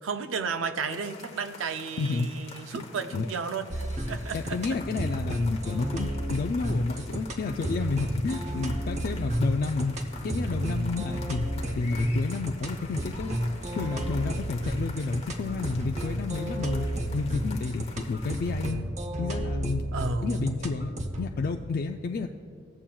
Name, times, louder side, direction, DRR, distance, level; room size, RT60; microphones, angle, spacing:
voice 1, 0.0-4.6 19.9-20.5, right 4 dB, 80° right, 9 dB, 0.5 m, -32 dB
sound 1, 0.9-18.7, left 4 dB, 35° left, 0.9 m, -47 dB
voice 2, 2.0-2.4 3.1-3.2 4.3-9.9 10.2-13.4 13.8-16.9 17.1-18.9 19.2-19.8 20.2-22.3, left 4 dB, 50° left, 4 dB, 0.3 m, -30 dB
sound 2, 3.7-21.3, right 1 dB, 35° right, 0.7 m, -32 dB
16.0 x 7.3 x 2.3 m, 2.5 s
head